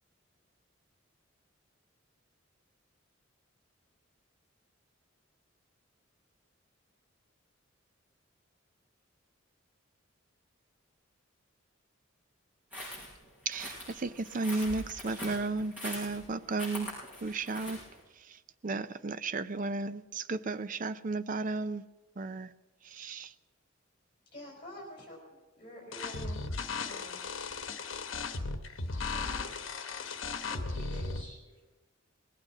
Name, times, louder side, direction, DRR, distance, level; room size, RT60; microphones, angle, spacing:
sound 1, 12.7-18.0, left 1 dB, 10° right, 6.6 m, -43 dB
voice 1, 13.5-16.9 17.2-17.8 18.3-18.4 18.6-21.8 22.2-22.5 22.8-23.3, right 3 dB, 40° right, 0.5 m, -34 dB
voice 2, 24.3-26.4 26.8-27.3, equal, 25° left, 3.9 m, -47 dB
sound 2, 25.9-31.2, left 4 dB, 75° left, 1.0 m, -36 dB
voice 3, 28.3-28.6 29.1-29.9 30.5-31.7, left 1 dB, 25° right, 5.3 m, -51 dB
20.0 x 9.1 x 7.2 m
head